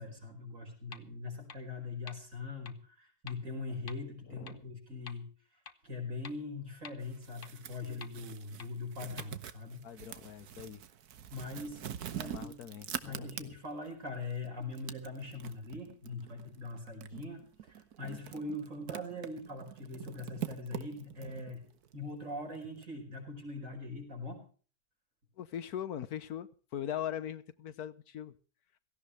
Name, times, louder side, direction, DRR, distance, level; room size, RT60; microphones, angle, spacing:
voice 1, 0.0-5.3 5.8-9.8 11.3-11.9 12.1-12.5 13.0-21.6 21.9-24.4, left 3 dB, 55° right, 2 dB, 5.4 m, -42 dB
sound 1, 0.9-1.0 1.5-1.6 2.1-2.2 2.6-2.7 3.3-3.4 3.9-4.0 4.5-4.6 5.1-5.2 5.6-5.7 6.2-6.3 6.8-6.9 7.4-7.5 8.0-8.1 8.6-8.7 9.2-9.3, left 6 dB, 40° left, 1.1 m, -47 dB
voice 2, 4.3-4.6 9.8-10.8 12.1-13.5 25.4-28.3, left 10 dB, 80° left, 14 dB, 1.5 m, -41 dB
sound 2, 7.0-13.9 14.3-22.8, right 10 dB, 90° right, 1.5 m, -45 dB
17.0 x 16.0 x 3.3 m, 0.40 s
omnidirectional pair, 1.6 m